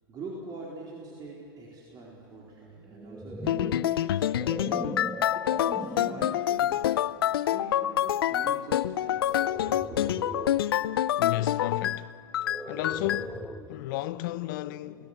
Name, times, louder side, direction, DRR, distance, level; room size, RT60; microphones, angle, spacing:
voice 1, 0.1-4.5 5.3-6.9 7.3-10.0, right 2 dB, 35° right, 4.2 m, -44 dB
sound 1, 2.9-6.5 7.1-7.4 9.2-10.7 12.4-13.9, right 1 dB, 5° right, 1.2 m, -39 dB
sound 2, 3.5-12.0 12.3-13.3, left 12 dB, 80° left, 0.5 m, -27 dB
voice 2, 11.2-12.1 12.4-15.1, left 15 dB, 60° left, 1.0 m, -33 dB
29.5 x 18.5 x 8.3 m
hypercardioid pair, 105°, 12 cm